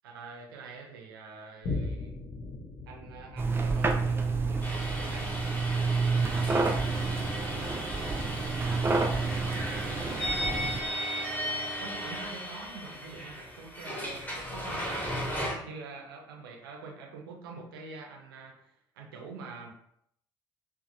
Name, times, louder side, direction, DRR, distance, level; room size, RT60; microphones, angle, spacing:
voice 1, 0.0-2.2 2.9-5.3 5.7-6.0 9.4-15.2 15.6-19.7, right 4 dB, 80° right, 0 dB, 0.4 m, -46 dB
Boom, 1.6-8.5 9.1-9.2, left 3 dB, 55° left, 0.6 m, -41 dB
sound 1, 3.4-10.8, right 4 dB, 20° right, 0.3 m, -29 dB
sound 2, 4.6-15.5, equal, 15° left, 1.0 m, -36 dB
2.7 x 2.1 x 2.5 m, 0.70 s
figure-of-eight pair, 45°, 12 cm